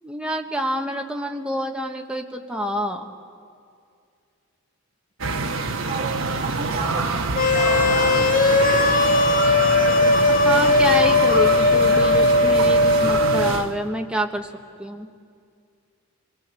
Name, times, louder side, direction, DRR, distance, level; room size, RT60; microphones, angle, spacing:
voice 1, 0.0-3.1 10.3-14.5 14.8-15.1, right 1 dB, 5° right, 3 dB, 1.4 m, -27 dB
sound 1, 5.2-13.7, right 3 dB, 80° right, 1.3 m, -26 dB
voice 2, 5.9-8.4 8.7-8.9, right 3 dB, 30° right, 4 dB, 1.1 m, -35 dB
sound 2, 7.4-13.5, left 2 dB, 40° left, 0.8 m, -18 dB
27.0 x 21.5 x 7.6 m, 2.3 s
head